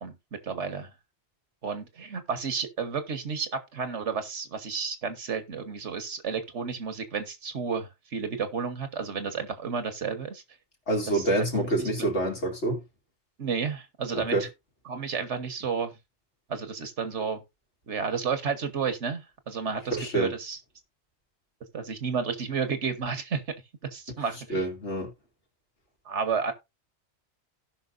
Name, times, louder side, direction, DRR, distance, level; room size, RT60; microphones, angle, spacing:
voice 1, 0.4-0.9 1.6-10.4 11.1-11.9 13.4-14.5 14.8-16.0 16.5-17.4 17.9-20.6 21.7-23.4 23.9-24.7 26.0-26.5, right 5 dB, 80° right, 1.7 m, -32 dB
voice 2, 10.9-12.8 14.1-14.4 19.9-20.3 24.5-25.1, right 2 dB, 80° left, 3.0 m, -27 dB
16.5 x 5.7 x 2.6 m
omnidirectional pair, 1.2 m